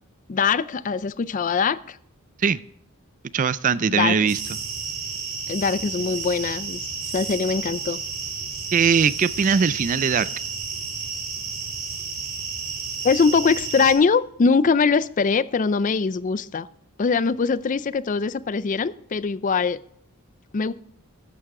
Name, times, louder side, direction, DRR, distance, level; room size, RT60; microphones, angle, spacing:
voice 1, 0.3-2.0 3.9-4.2 5.5-6.9 7.1-8.0 13.0-16.7 17.0-19.8 20.5-20.7, left 5 dB, 35° left, 17 dB, 0.4 m, -22 dB
voice 2, 3.3-4.4 8.7-10.3, right 6 dB, 35° right, 17 dB, 0.3 m, -20 dB
sound 1, 4.3-13.9, right 5 dB, 70° right, 4.6 m, -32 dB
13.0 x 10.5 x 3.7 m, 0.72 s
head